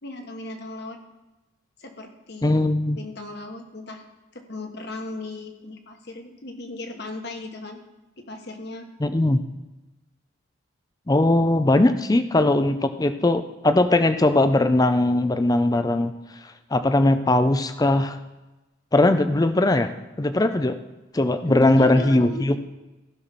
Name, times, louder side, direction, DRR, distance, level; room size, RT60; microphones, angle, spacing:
voice 1, 0.0-1.0 1.8-2.6 3.0-4.0 4.3-7.8 8.2-8.9 21.5-22.4, left 2 dB, 55° left, 4 dB, 1.3 m, -36 dB
voice 2, 2.4-3.0 9.0-9.4 11.1-16.1 16.7-18.2 18.9-20.8 21.1-22.6, left 2 dB, 20° left, 10 dB, 0.4 m, -20 dB
15.5 x 6.1 x 4.1 m, 1.1 s
head